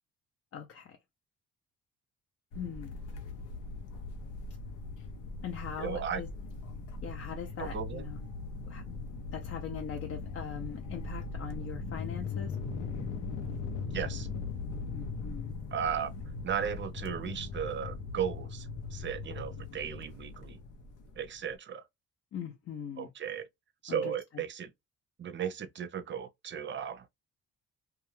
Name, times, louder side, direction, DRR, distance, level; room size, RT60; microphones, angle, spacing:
voice 1, 0.5-1.0 2.5-3.0 5.4-6.3 7.0-8.2 8.6-8.9 9.3-12.6 14.9-15.5 22.3-23.1 23.9-24.1, left 8 dB, 50° left, 0.6 m, -41 dB
sound 1, 2.5-21.5, left 4 dB, 85° left, 0.7 m, -40 dB
voice 2, 5.8-6.2 7.6-8.1 13.9-14.3 15.7-16.1 16.4-20.6 21.2-21.8 23.0-23.5 23.8-24.7 25.2-27.1, right 8 dB, 40° right, 0.6 m, -35 dB
2.4 x 2.3 x 3.0 m
cardioid pair, 90°, 30 cm